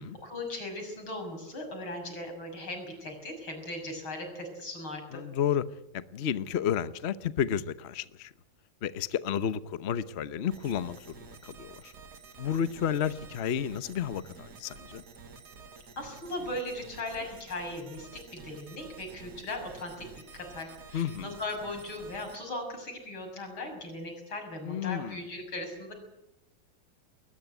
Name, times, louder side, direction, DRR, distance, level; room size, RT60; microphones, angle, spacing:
voice 1, 0.2-5.2 16.0-20.1 20.3-25.9, left 1 dB, 90° left, 7.3 m, -38 dB
voice 2, 5.1-5.7 5.9-8.3 8.8-11.9 12.4-15.0 20.9-21.4 24.6-25.2, left 9 dB, 50° left, 0.8 m, -31 dB
sound 1, 10.5-22.4, right 4 dB, 55° right, 2.4 m, -50 dB
21.0 x 20.0 x 8.1 m
omnidirectional pair, 2.2 m